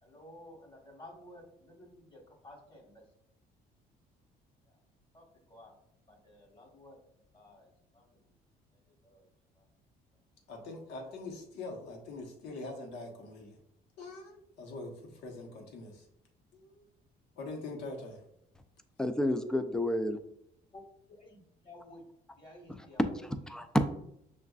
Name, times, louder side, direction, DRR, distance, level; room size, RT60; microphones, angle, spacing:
voice 1, 0.0-3.0 4.6-4.8 5.1-5.8 6.1-7.0 7.3-8.3 8.7-9.3 9.5-9.7 20.7-22.0 22.4-23.0, left 1 dB, 30° left, 0 dB, 1.3 m, -54 dB
voice 2, 10.5-13.6 14.0-16.1 16.5-16.8 17.4-18.2, left 2 dB, 80° left, 1 dB, 1.0 m, -43 dB
voice 3, 19.0-20.2 22.7-23.9, left 1 dB, 5° left, 8 dB, 0.4 m, -30 dB
6.3 x 2.5 x 2.3 m, 0.75 s
cardioid pair, 110°, 17 cm